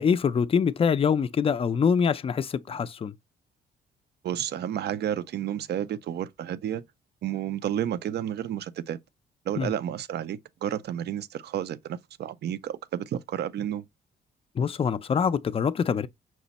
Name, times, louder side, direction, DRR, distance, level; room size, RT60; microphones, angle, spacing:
voice 1, 0.0-3.1 9.6-9.7 14.6-16.1, left 6 dB, 30° left, 0.4 m, -24 dB
voice 2, 4.2-6.8 7.2-9.0 9.5-13.8, right 10 dB, 60° right, 0.4 m, -31 dB
6.0 x 2.0 x 4.0 m
cardioid pair, 90°, 20 cm